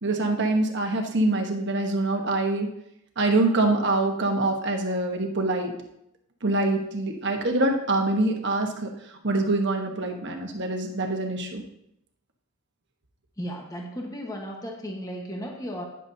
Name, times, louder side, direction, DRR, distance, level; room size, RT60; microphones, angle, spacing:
voice 1, 0.0-2.7 3.2-5.8 6.4-8.9 9.2-11.6, right 2 dB, 55° right, 3 dB, 1.4 m, -25 dB
voice 2, 13.4-15.8, equal, 15° left, 0 dB, 1.4 m, -35 dB
12.0 x 10.0 x 2.9 m, 0.79 s
head